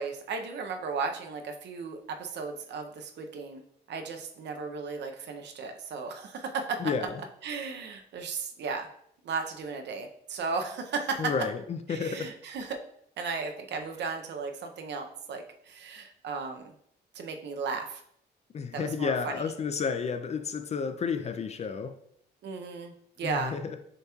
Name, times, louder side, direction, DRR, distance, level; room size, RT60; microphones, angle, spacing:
voice 1, 0.0-3.6 3.9-7.1 7.4-8.9 9.2-11.2 11.9-12.8 13.2-16.7 17.1-18.0 18.7-19.4 22.4-23.6, right 4 dB, 70° right, 5 dB, 0.6 m, -35 dB
voice 2, 6.8-7.2 11.2-12.3 18.5-22.0 23.2-23.8, left 5 dB, 35° left, 10 dB, 0.3 m, -31 dB
6.4 x 2.9 x 2.3 m, 0.69 s
cardioid pair, 105°, 19 cm